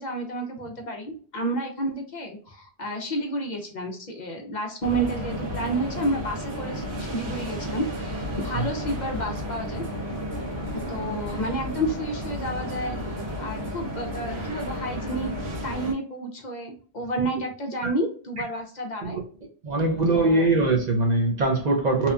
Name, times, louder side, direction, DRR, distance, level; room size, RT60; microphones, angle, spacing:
voice 1, 0.0-9.8 10.7-13.0 13.4-15.3 15.6-19.2 20.1-20.5, right 1 dB, 55° left, 0.5 m, -30 dB
sound 1, 4.8-15.9, equal, 70° right, 1.0 m, -32 dB
voice 2, 19.6-22.1, right 2 dB, 55° right, 0.5 m, -22 dB
2.8 x 2.2 x 2.4 m
omnidirectional pair, 1.2 m